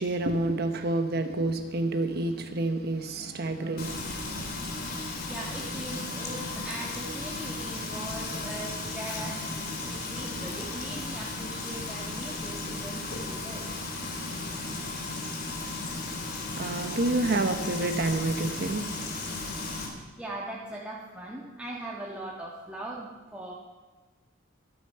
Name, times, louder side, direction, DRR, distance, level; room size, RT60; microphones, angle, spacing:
voice 1, 0.0-4.7 16.6-19.5, right 2 dB, 55° right, 1.0 m, -29 dB
Frying (food), 3.8-19.9, left 2 dB, 50° left, 3.3 m, -35 dB
voice 2, 5.2-13.7 14.5-14.6 20.2-23.5, right 1 dB, 5° right, 1.8 m, -40 dB
24.0 x 9.2 x 5.7 m
head